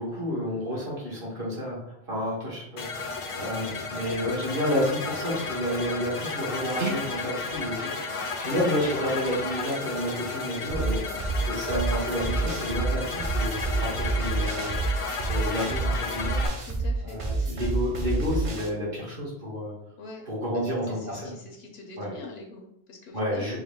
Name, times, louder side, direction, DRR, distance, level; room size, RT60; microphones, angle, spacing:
voice 1, 0.0-8.0 8.4-11.0 11.5-14.8 15.3-16.5 17.0-19.7 20.3-21.3 22.0-22.1 23.1-23.6, equal, 65° right, -6 dB, 1.8 m, -30 dB
sound 1, 2.8-16.5, left 4 dB, 50° left, 0.4 m, -33 dB
Dog, 6.4-11.7, right 4 dB, 80° right, 1.0 m, -41 dB
sound 2, 10.7-18.7, right 3 dB, 45° right, 0.5 m, -28 dB
voice 2, 16.6-17.7 20.0-20.2 20.5-23.6, left 3 dB, 90° left, 2 dB, 1.0 m, -44 dB
4.6 x 2.2 x 3.6 m, 0.79 s
omnidirectional pair, 1.0 m